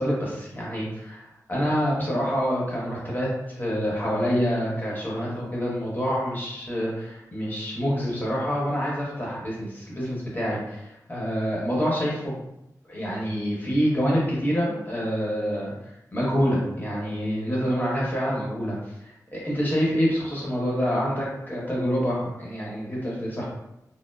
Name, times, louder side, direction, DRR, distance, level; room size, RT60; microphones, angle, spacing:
voice 1, 0.0-3.3 3.6-12.3 12.9-15.7 16.1-23.4, equal, 30° left, -5 dB, 0.9 m, -27 dB
2.9 x 2.0 x 2.2 m, 0.85 s
wide cardioid pair, 100°, 7 cm